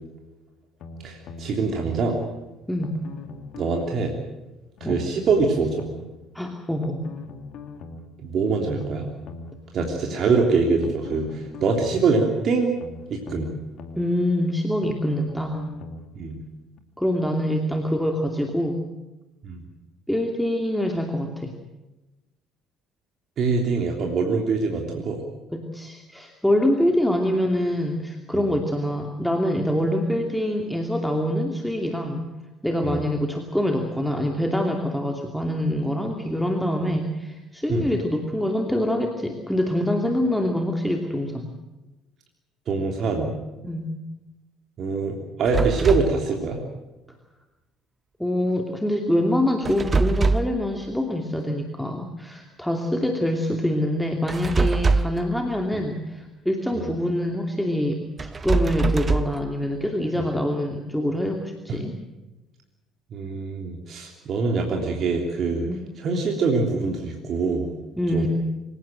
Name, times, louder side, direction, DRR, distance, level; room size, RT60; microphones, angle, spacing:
sound 1, 0.8-2.1 2.8-4.1 4.8-6.1 6.8-8.1 8.8-10.1 10.8-12.1 12.8-14.1 14.8-16.1 16.8-16.9, left 3 dB, 55° left, 2.6 m, -40 dB
voice 1, 1.0-2.2 3.6-4.1 4.8-5.9 8.2-9.0 9.7-12.8 13.1-13.5 16.1-16.4 19.4-19.6 23.4-25.2 28.3-28.4 32.8-33.0 36.8-36.9 37.7-37.9 42.7-43.3 44.8-46.6 55.7-55.8 56.7-56.9 60.1-60.3 63.1-65.7 66.0-67.7 68.1-68.3, right 4 dB, 50° right, 2 dB, 3.3 m, -24 dB
voice 2, 6.3-7.0 13.9-15.6 17.0-18.8 20.1-21.5 25.5-32.2 32.6-41.5 43.6-43.9 48.2-62.0 65.7-65.8 68.0-68.3, left 1 dB, 5° left, 3 dB, 2.7 m, -25 dB
sound 2, 45.5-46.2 49.6-50.6 54.3-55.3 58.2-59.4, right 4 dB, 30° right, 0.8 m, -23 dB
26.0 x 17.0 x 7.7 m, 1.1 s
figure-of-eight pair, 55°, 0 cm